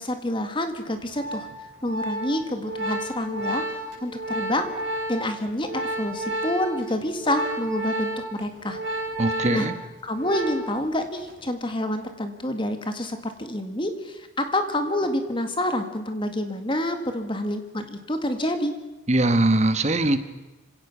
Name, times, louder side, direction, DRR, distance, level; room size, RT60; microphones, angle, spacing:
voice 1, 0.0-1.5 1.8-3.6 4.0-4.7 5.1-8.8 9.5-9.7 10.0-18.7, left 1 dB, 25° left, 7 dB, 1.9 m, -28 dB
Organ, 0.9-10.9 11.2-11.5, right 1 dB, 55° right, 6.2 m, -31 dB
voice 2, 9.2-9.7 19.1-20.2, right 2 dB, 35° right, 11 dB, 1.2 m, -21 dB
26.0 x 16.5 x 6.0 m, 1.1 s
head